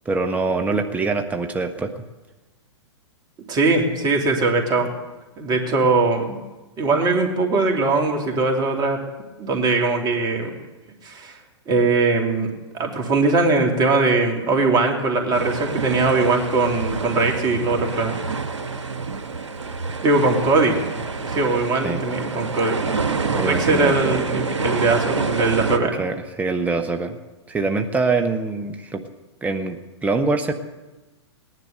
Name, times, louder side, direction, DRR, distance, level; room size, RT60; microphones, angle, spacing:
voice 1, 0.0-1.9 21.8-22.0 23.3-24.2 26.0-27.2 27.5-29.0 29.4-30.5, right 3 dB, 10° right, 6 dB, 1.0 m, -24 dB
voice 2, 3.5-4.9 5.4-6.4 6.8-9.0 9.4-10.5 11.0-11.3 11.7-18.2 20.0-20.8 21.2-22.8 23.4-25.9, right 3 dB, 25° right, 2 dB, 2.8 m, -20 dB
sound 1, 15.3-25.8, right 4 dB, 80° right, 1.3 m, -27 dB
18.0 x 11.0 x 6.6 m, 1.1 s
hypercardioid pair, 110°, 15 cm